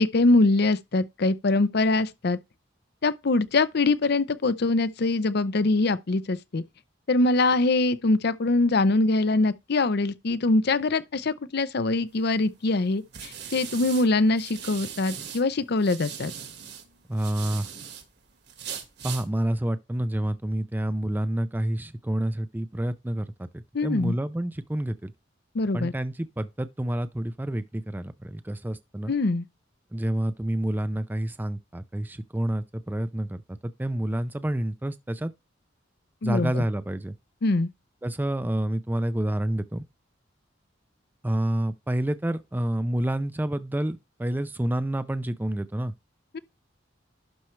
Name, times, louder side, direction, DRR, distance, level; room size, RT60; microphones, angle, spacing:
voice 1, 0.0-2.4 3.0-6.6 7.1-16.3 23.7-24.2 25.5-25.9 29.1-29.4 36.2-36.6 37.4-37.7 46.3-46.4, left 2 dB, 60° left, 0.6 m, -23 dB
sound 1, 12.2-15.4 15.8-18.0 18.5-19.3, right 8 dB, 60° right, 1.6 m, -39 dB
voice 2, 17.1-17.7 19.0-25.1 25.7-29.1 29.9-35.3 36.2-37.1 38.0-39.8 41.2-45.9, right 1 dB, 10° right, 0.4 m, -28 dB
11.5 x 4.4 x 3.2 m
head